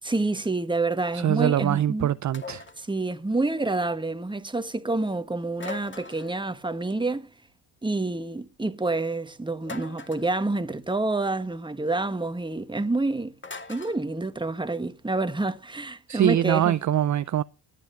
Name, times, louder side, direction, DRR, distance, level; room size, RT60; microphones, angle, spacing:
voice 1, 0.0-2.1 2.8-7.3 7.8-13.3 13.7-16.8, right 2 dB, 10° right, 1.4 m, -28 dB
voice 2, 1.1-2.6 16.1-17.4, right 11 dB, 40° right, 0.6 m, -23 dB
sound 1, 2.3-2.8 5.6-6.4 9.6-10.3 13.4-14.0, left 4 dB, 25° left, 2.1 m, -40 dB
13.5 x 9.8 x 6.9 m
supercardioid pair, 75°, 46 cm